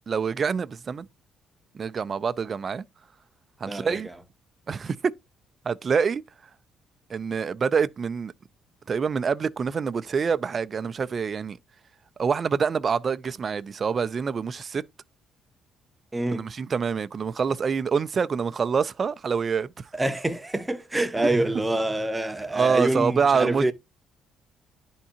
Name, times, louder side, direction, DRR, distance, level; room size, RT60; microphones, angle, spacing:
voice 1, 0.1-1.1 1.7-2.8 3.6-4.1 4.7-5.1 5.7-6.2 7.1-8.3 8.9-11.6 12.2-14.8 16.3-19.8 21.2-21.3 22.5-23.7, right 6 dB, 45° right, 0.4 m, -26 dB
voice 2, 3.6-4.0 16.1-16.5 19.9-23.7, right 1 dB, 15° right, 0.7 m, -26 dB
10.5 x 3.6 x 2.8 m
supercardioid pair, 75°, 0 cm